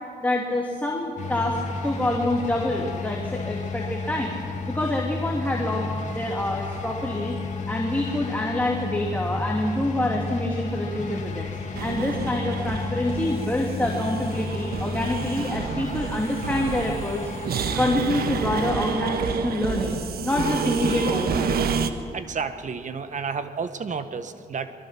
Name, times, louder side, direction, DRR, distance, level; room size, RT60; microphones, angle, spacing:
voice 1, 0.2-1.6 1.8-4.4 4.7-7.4 7.7-11.5 11.8-17.2 17.7-21.6, left 1 dB, 10° left, -1 dB, 2.9 m, -26 dB
sound 1, 1.2-19.0, left 3 dB, 45° left, 2.5 m, -33 dB
sound 2, 11.7-21.9, right 6 dB, 65° right, 1.4 m, -29 dB
voice 2, 22.1-24.7, right 5 dB, 45° right, 10 dB, 1.4 m, -31 dB
23.0 x 22.5 x 6.0 m, 2.4 s
cardioid pair, 80°, 17 cm